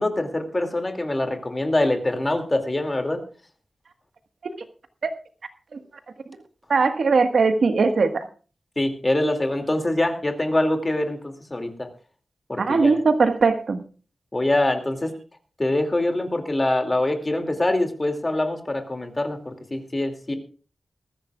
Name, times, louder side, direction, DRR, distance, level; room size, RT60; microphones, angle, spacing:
voice 1, 0.0-3.2 8.8-11.9 12.5-12.9 14.3-15.1 15.6-20.3, left 1 dB, 20° left, 5 dB, 2.4 m, -24 dB
voice 2, 6.7-8.3 12.6-13.8, right 4 dB, 65° right, 7 dB, 1.5 m, -19 dB
21.5 x 14.0 x 2.4 m, 0.38 s
wide cardioid pair, 160°, 0 cm